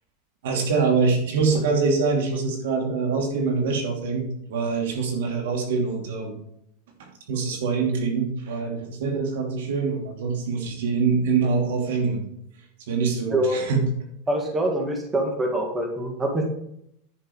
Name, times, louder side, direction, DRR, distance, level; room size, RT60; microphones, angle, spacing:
voice 1, 0.4-6.4 7.0-12.2 12.9-13.8, right 4 dB, 85° right, 2 dB, 2.7 m, -24 dB
voice 2, 14.3-16.5, right 1 dB, 15° right, 1 dB, 1.8 m, -24 dB
10.0 x 6.4 x 4.9 m, 0.73 s
supercardioid pair, 155°, 0 cm